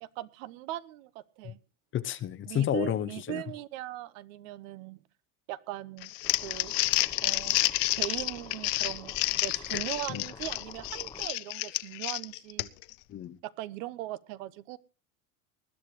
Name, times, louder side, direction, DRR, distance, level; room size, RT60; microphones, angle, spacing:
voice 1, 0.0-1.6 2.5-5.0 5.5-6.1 6.4-6.8 7.2-7.6 7.9-12.7 13.4-14.8, right 15 dB, 70° right, 16 dB, 1.1 m, -39 dB
voice 2, 1.9-3.4 9.7-9.8 10.1-10.2 13.1-13.4, left 11 dB, 30° left, 15 dB, 0.8 m, -31 dB
Crumpling crinkling, 6.0-12.9, left 21 dB, 65° left, 0.8 m, -30 dB
sound 1, 6.2-11.3, left 4 dB, 10° left, 1.1 m, -48 dB
20.5 x 11.5 x 3.2 m, 0.35 s
supercardioid pair, 125°, 41 cm